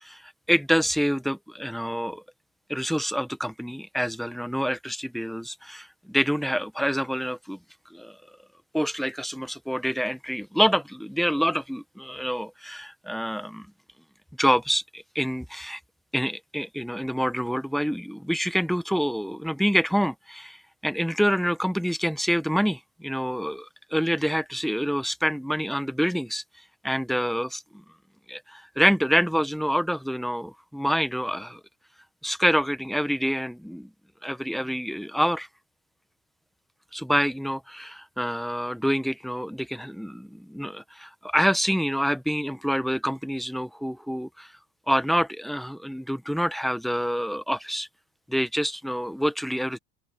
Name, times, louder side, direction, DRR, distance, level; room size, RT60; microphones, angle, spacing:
voice 1, 0.0-2.2 2.7-7.6 7.9-8.2 8.7-13.7 14.4-15.8 16.1-26.4 26.8-27.8 28.3-31.6 32.2-33.9 34.2-35.5 36.9-44.5 44.9-47.9 48.3-49.8, equal, ahead, 1.3 m, -27 dB
open air
supercardioid pair, 105°, 48 cm